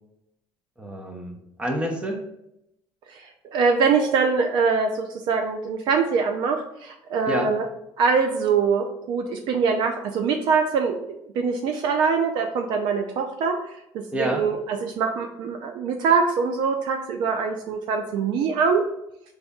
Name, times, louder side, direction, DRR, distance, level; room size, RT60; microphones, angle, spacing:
voice 1, 0.8-2.2 7.3-7.5 14.1-14.5, equal, 15° right, 2 dB, 0.8 m, -28 dB
voice 2, 3.1-7.6 8.0-11.0 11.4-13.6 13.9-18.8, right 5 dB, 70° right, 5 dB, 0.4 m, -23 dB
4.0 x 3.4 x 3.5 m, 0.83 s
cardioid pair, 140°, 8 cm